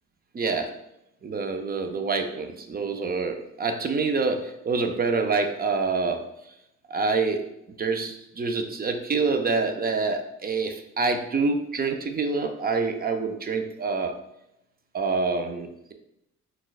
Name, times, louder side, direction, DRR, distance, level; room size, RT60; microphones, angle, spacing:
voice 1, 0.3-0.7 1.2-6.2 6.9-7.5 7.8-14.1 14.9-15.9, right 4 dB, 30° right, 6 dB, 0.5 m, -26 dB
6.1 x 2.3 x 2.3 m, 0.82 s
cardioid pair, 90°, 30 cm